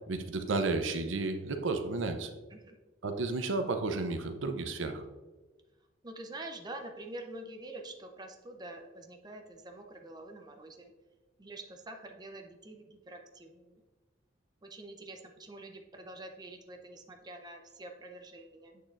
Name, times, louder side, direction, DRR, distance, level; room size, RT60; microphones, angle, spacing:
voice 1, 0.1-2.3 3.0-5.0, right 3 dB, 75° right, 7 dB, 0.6 m, -32 dB
voice 2, 6.0-10.9 11.4-13.8 14.6-18.8, right 2 dB, 20° right, 4 dB, 0.6 m, -46 dB
8.0 x 6.5 x 2.5 m, 1.2 s
head